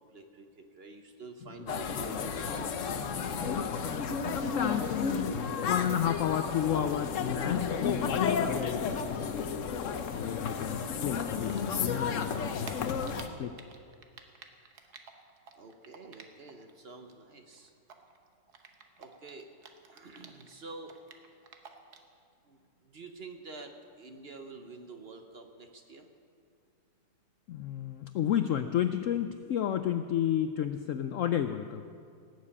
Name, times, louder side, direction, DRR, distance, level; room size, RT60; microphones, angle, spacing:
voice 1, 0.1-2.7 3.2-3.9 15.6-17.7 19.0-19.5 19.9-20.9 22.5-26.1, right 3 dB, 40° right, 5 dB, 1.0 m, -48 dB
sound 1, 1.7-13.3, left 6 dB, 55° left, 1.0 m, -32 dB
voice 2, 3.3-3.9 4.3-9.5 10.1-12.9 13.4-13.6 27.5-31.9, left 10 dB, 75° left, 9 dB, 0.7 m, -32 dB
Typing, 10.6-12.0 12.2-16.7 17.0-20.5 20.8-22.1, right 6 dB, 65° right, 1.6 m, -51 dB
17.5 x 7.5 x 8.5 m, 2.4 s
omnidirectional pair, 1.9 m